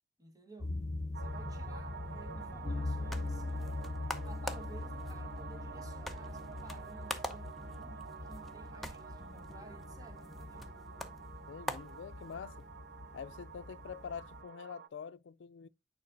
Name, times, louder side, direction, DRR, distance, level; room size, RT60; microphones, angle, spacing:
voice 1, 0.2-0.7 1.2-3.7 4.2-10.7, right 2 dB, 20° right, 1.2 m, -55 dB
sound 1, 0.6-14.4, left 2 dB, 40° left, 0.7 m, -42 dB
sound 2, 1.1-14.9, right 6 dB, 60° right, 0.5 m, -49 dB
sound 3, 2.7-12.7, left 1 dB, ahead, 0.7 m, -46 dB
voice 2, 11.5-12.7 13.1-15.7, left 6 dB, 85° left, 0.4 m, -45 dB
9.5 x 4.9 x 2.6 m
head